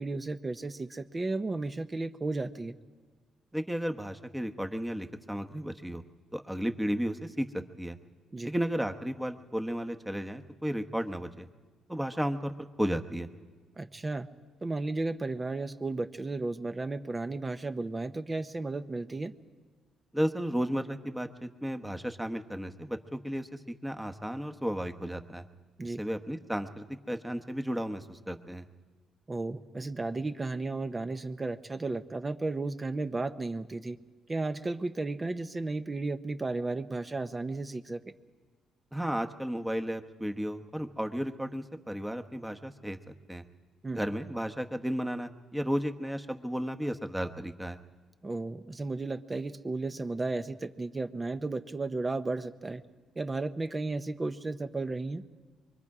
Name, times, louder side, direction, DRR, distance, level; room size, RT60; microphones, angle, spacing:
voice 1, 0.0-2.8 8.3-8.5 13.8-14.3 14.6-19.3 25.8-26.0 29.3-34.0 34.3-38.0 43.8-44.0 48.2-52.8 53.2-55.2, right 3 dB, 25° right, 9 dB, 0.8 m, -34 dB
voice 2, 3.5-6.0 6.3-8.0 8.4-11.5 11.9-13.3 20.1-23.5 23.8-25.4 25.8-28.6 38.9-43.4 43.9-47.8, equal, 5° right, 6 dB, 1.1 m, -33 dB
24.0 x 23.5 x 4.9 m, 1.4 s
cardioid pair, 90°, 0 cm